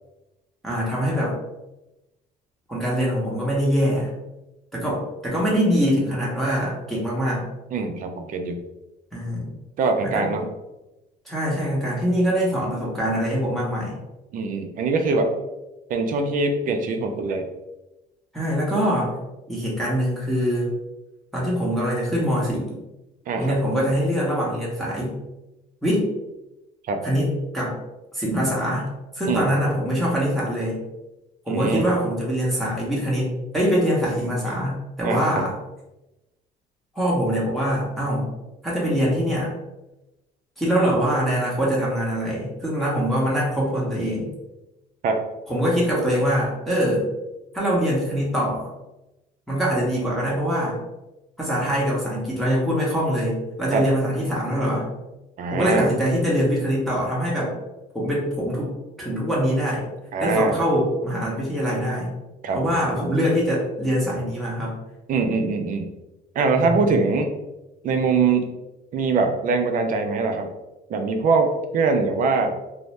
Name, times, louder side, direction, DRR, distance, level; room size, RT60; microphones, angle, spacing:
voice 1, 0.6-1.3 2.7-4.1 4.7-7.4 9.1-9.5 10.0-10.5 11.2-14.0 18.3-19.1 19.5-20.7 21.3-22.8 23.3-25.2 25.8-26.1 27.0-27.7 28.1-30.8 31.5-35.5 36.9-38.3 38.6-39.5 40.6-44.3 45.5-47.1 47.5-48.7 49.5-50.8 51.4-54.9 55.5-57.5 57.9-58.7 59.0-59.9 60.2-62.1 62.5-64.7 66.6-66.8, equal, ahead, -6 dB, 0.9 m, -23 dB
voice 2, 7.7-8.6 9.8-10.4 14.3-15.3 15.9-17.5 23.3-23.6 26.9-27.0 29.3-29.4 31.5-31.9 35.0-35.4 45.0-45.2 53.7-53.8 55.4-55.9 60.1-60.6 62.4-62.6 65.1-65.9 66.4-67.3 67.8-68.5 68.9-70.5 70.9-72.5, right 4 dB, 55° right, 5 dB, 0.5 m, -22 dB
2.6 x 2.0 x 3.1 m, 0.98 s
cardioid pair, 110°, 17 cm